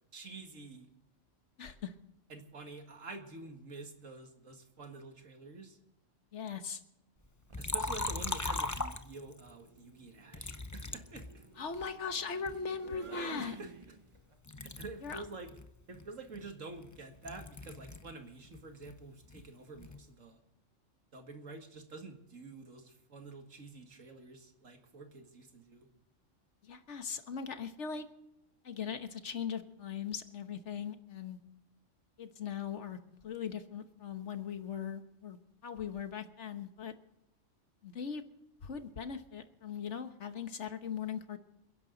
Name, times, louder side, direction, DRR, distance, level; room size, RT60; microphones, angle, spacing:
voice 1, 0.1-0.9 2.3-5.8 7.6-11.5 13.4-14.0 14.6-15.5 15.9-20.4 21.1-25.9, right 3 dB, 80° right, 5 dB, 2.3 m, -48 dB
voice 2, 1.6-1.9 6.3-6.8 11.6-13.5 15.0-15.2 26.6-28.0 28.6-31.4 32.2-33.0 33.2-36.9 37.8-38.2 38.6-41.4, left 6 dB, 65° left, 9 dB, 1.5 m, -39 dB
sound 1, 7.2-7.7 9.1-14.4, right 3 dB, 30° right, 0.7 m, -52 dB
Liquid, 7.5-9.5 10.3-11.9 12.5-14.2 14.5-18.1 18.4-20.1, left 2 dB, 20° left, 0.6 m, -40 dB
28.5 x 11.0 x 4.0 m, 0.89 s
omnidirectional pair, 1.3 m